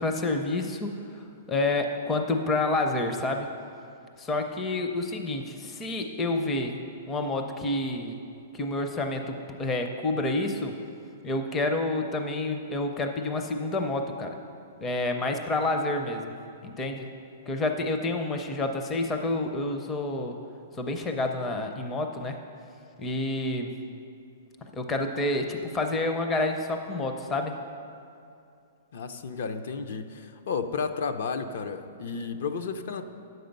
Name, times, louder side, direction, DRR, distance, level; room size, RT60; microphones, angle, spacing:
voice 1, 0.0-3.5 4.2-6.8 7.1-8.2 8.5-10.8 11.2-14.4 14.8-16.4 16.6-17.1 17.5-20.4 20.7-22.4 23.0-23.7 24.7-27.5, left 2 dB, 15° left, 4 dB, 0.5 m, -29 dB
voice 2, 28.9-33.0, left 5 dB, 60° left, 8 dB, 0.6 m, -32 dB
10.0 x 7.9 x 5.3 m, 2.5 s
hypercardioid pair, 165°, 0 cm